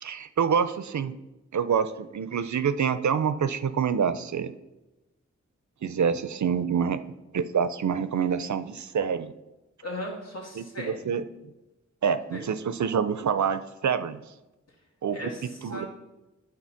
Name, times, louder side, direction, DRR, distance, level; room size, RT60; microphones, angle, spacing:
voice 1, 0.0-1.1 1.5-4.5 5.8-7.0 7.3-9.3 10.6-11.2 12.0-14.2 15.0-15.9, right 7 dB, 70° right, 13 dB, 0.4 m, -27 dB
voice 2, 9.8-11.1 12.3-12.5 15.1-15.9, left 1 dB, 55° left, -2 dB, 1.8 m, -37 dB
9.9 x 3.8 x 5.7 m, 1.0 s
wide cardioid pair, 65°, 30 cm